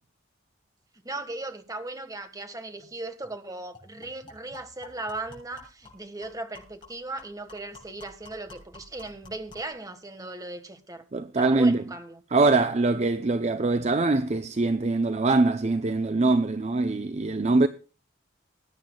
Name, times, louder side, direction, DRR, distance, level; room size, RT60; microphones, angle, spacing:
voice 1, 1.0-11.0 11.4-12.2, right 2 dB, 20° right, 1.5 m, -37 dB
sound 1, 2.8-2.9 3.2-3.4 3.7-9.8, left 3 dB, 25° left, 7.5 m, -51 dB
voice 2, 11.1-11.8 12.3-17.7, right 3 dB, 35° right, 0.6 m, -23 dB
20.5 x 10.0 x 2.3 m
head